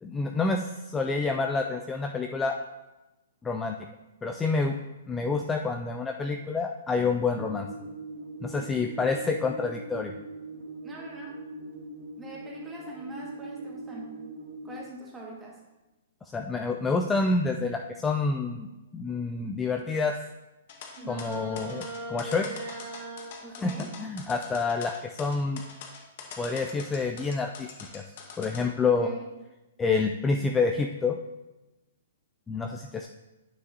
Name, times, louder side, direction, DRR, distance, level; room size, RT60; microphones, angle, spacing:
voice 1, 0.0-2.6 3.4-3.8 4.2-4.8 5.1-7.7 8.4-10.1 16.3-18.7 18.9-20.2 21.1-22.6 23.6-23.7 24.0-25.6 26.4-27.7 27.9-28.0 28.4-29.1 29.8-31.2 32.5-33.1, left 4 dB, 15° left, 4 dB, 0.4 m, -28 dB
sound 1, 7.3-14.8, right 1 dB, 60° right, 1.3 m, -41 dB
voice 2, 10.8-11.3 12.2-14.2 14.6-15.5 23.4-23.9 28.8-29.3, right 2 dB, 10° right, -2 dB, 1.7 m, -43 dB
sound 2, 20.7-28.6, left 6 dB, 45° left, 1.2 m, -43 dB
sound 3, 21.0-23.3, right 3 dB, 40° right, 1.7 m, -39 dB
9.5 x 6.0 x 2.7 m, 1.0 s
figure-of-eight pair, 115°, 0 cm